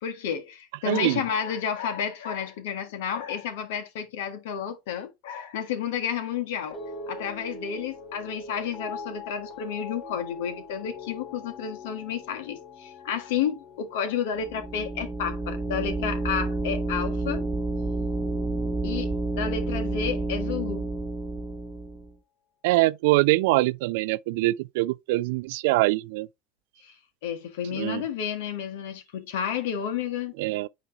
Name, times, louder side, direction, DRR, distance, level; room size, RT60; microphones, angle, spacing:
voice 1, 0.0-6.8 7.1-17.4 18.8-20.8 26.8-26.9 27.2-30.3, left 8 dB, 70° left, 1.5 m, -31 dB
voice 2, 0.9-1.2 22.6-26.3 27.7-28.0 30.4-30.7, right 20 dB, 70° right, 0.4 m, -23 dB
sound 1, 6.7-17.1 17.4-17.9, left 3 dB, 35° left, 2.9 m, -43 dB
HF Computer Hum A, 14.4-22.1, right 2 dB, 5° right, 1.4 m, -30 dB
9.2 x 3.1 x 3.5 m
hypercardioid pair, 80°, 0 cm